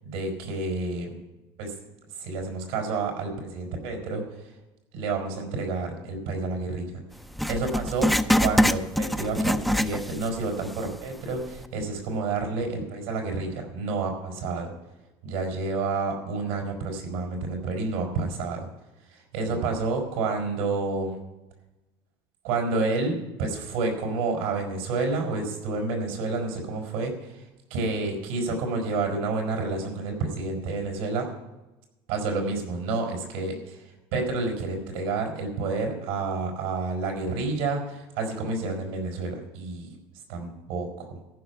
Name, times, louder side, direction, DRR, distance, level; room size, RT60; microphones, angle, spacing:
voice 1, 0.0-1.1 1.6-1.7 2.2-4.5 4.9-7.0 7.5-14.7 15.2-18.7 19.1-21.2 22.4-27.4 27.7-31.3 32.1-39.9 40.3-41.1, right 3 dB, 90° right, 2 dB, 4.2 m, -29 dB
Writing, 7.4-10.4 10.7-10.8 11.5-11.6, equal, ahead, 0.4 m, -24 dB
14.0 x 5.8 x 8.1 m, 1.0 s
supercardioid pair, 115°, 11 cm